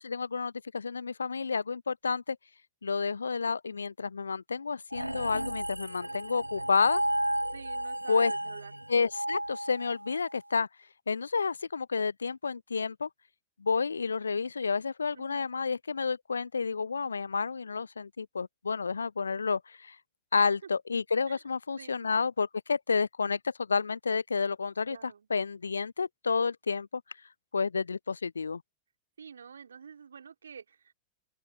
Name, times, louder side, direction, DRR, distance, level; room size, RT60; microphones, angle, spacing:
voice 1, 0.0-2.4 2.8-7.0 8.1-8.3 8.9-10.7 11.1-13.1 13.6-20.0 20.3-27.0 27.5-28.6, left 5 dB, 75° left, 0.3 m, -30 dB
sound 1, 4.9-10.3, right 1 dB, 85° right, 0.7 m, -33 dB
voice 2, 7.5-8.7 15.1-15.5 20.3-20.5 21.3-21.4 21.8-22.1 24.9-25.3 29.2-30.9, right 6 dB, 70° right, 3.6 m, -48 dB
open air
figure-of-eight pair, 90°, 0 cm